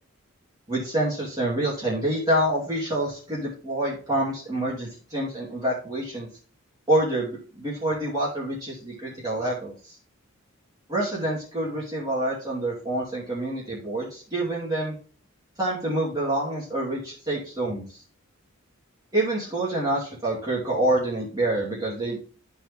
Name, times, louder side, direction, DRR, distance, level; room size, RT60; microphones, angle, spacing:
voice 1, 0.7-6.3 6.9-10.0 10.9-14.9 15.6-18.0 19.1-22.2, right 1 dB, 15° right, -7 dB, 2.7 m, -27 dB
13.0 x 4.5 x 3.6 m, 0.41 s
head